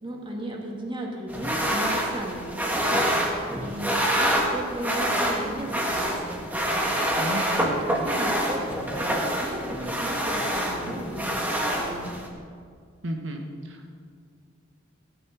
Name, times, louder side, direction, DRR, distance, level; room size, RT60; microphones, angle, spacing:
voice 1, 0.0-3.3 3.6-6.8 7.6-12.1, right 1 dB, 25° right, 0 dB, 2.0 m, -35 dB
sound 1, 1.3-12.3, equal, 10° right, 1.5 m, -26 dB
voice 2, 7.2-8.0 13.0-13.9, right 1 dB, 75° right, 3 dB, 1.1 m, -34 dB
14.5 x 9.4 x 6.0 m, 2.1 s
head